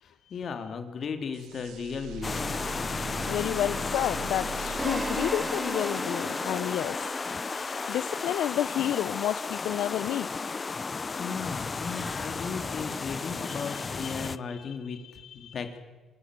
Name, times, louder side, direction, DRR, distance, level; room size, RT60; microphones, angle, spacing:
voice 1, 0.0-2.5 11.2-15.8, left 5 dB, 55° left, 6 dB, 3.1 m, -36 dB
sound 1, 1.3-6.7, right 9 dB, 85° right, 1.4 m, -42 dB
sound 2, 2.2-14.4, left 4 dB, 30° left, 0.7 m, -33 dB
voice 2, 3.3-10.4 13.5-15.5, left 12 dB, 85° left, 12 dB, 0.6 m, -32 dB
sound 3, 4.8-8.8, right 1 dB, 5° right, 3.2 m, -37 dB
26.5 x 18.0 x 7.7 m, 1.3 s
cardioid pair, 90°, 0 cm